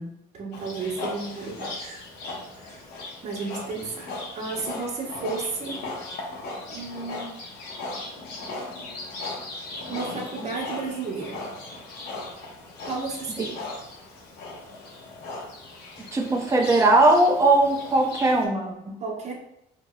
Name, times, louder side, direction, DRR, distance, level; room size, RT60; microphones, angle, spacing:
voice 1, 0.0-2.0 2.5-2.8 3.2-5.9 6.7-7.4 9.9-11.4 12.8-13.6 19.0-19.3, right 4 dB, 40° right, -3 dB, 1.0 m, -33 dB
Livestock farm animals working animals, 0.5-18.4, left 2 dB, 75° left, 1.0 m, -37 dB
voice 2, 16.1-19.0, right 2 dB, 15° right, 1 dB, 0.5 m, -20 dB
4.5 x 2.8 x 2.3 m, 0.79 s
cardioid pair, 110°, 17 cm